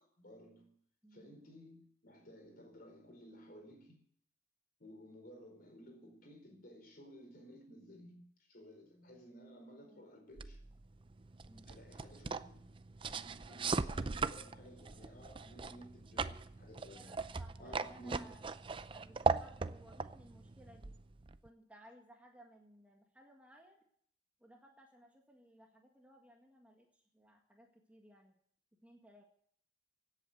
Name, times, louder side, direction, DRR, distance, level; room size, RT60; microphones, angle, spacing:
voice 1, 0.2-0.7 1.1-4.0 4.8-10.6 11.6-12.8 13.0-17.3 17.6-18.3, equal, 50° left, 4.5 m, -55 dB
voice 2, 1.0-1.3 9.9-10.0 11.5-11.7 13.5-13.6 16.9-18.4 18.9-20.9 21.4-23.8 24.4-28.3 28.8-29.2, equal, 5° right, 1.7 m, -61 dB
sound 1, 10.4-21.5, right 4 dB, 25° right, 0.5 m, -39 dB
17.0 x 8.5 x 8.0 m
head